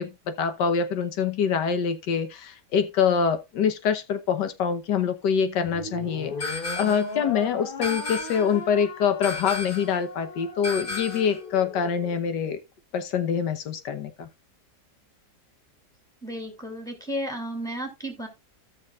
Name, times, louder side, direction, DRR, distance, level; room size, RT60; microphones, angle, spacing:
voice 1, 0.0-12.6 12.9-14.3, left 7 dB, 90° left, 1.7 m, -25 dB
sound 1, 5.6-12.1, left 3 dB, 35° left, 1.3 m, -38 dB
sound 2, 6.4-7.1 7.8-8.6 9.2-10.0 10.6-11.4, left 3 dB, 50° left, 3.1 m, -33 dB
voice 2, 16.2-18.3, equal, ahead, 2.7 m, -33 dB
15.5 x 6.4 x 2.4 m
omnidirectional pair, 1.8 m